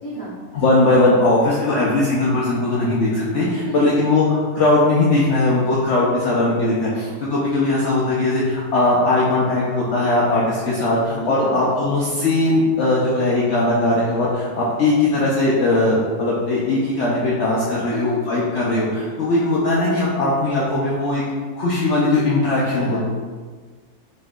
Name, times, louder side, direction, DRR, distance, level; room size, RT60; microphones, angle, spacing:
voice 1, 0.0-0.4 3.6-3.9 11.2-11.6 17.9-18.2 22.8-23.0, right 1 dB, 25° left, -13 dB, 1.1 m, -32 dB
voice 2, 0.5-21.2 21.6-23.0, left 2 dB, 60° left, -6 dB, 0.8 m, -19 dB
4.1 x 3.6 x 2.3 m, 1.5 s
omnidirectional pair, 1.6 m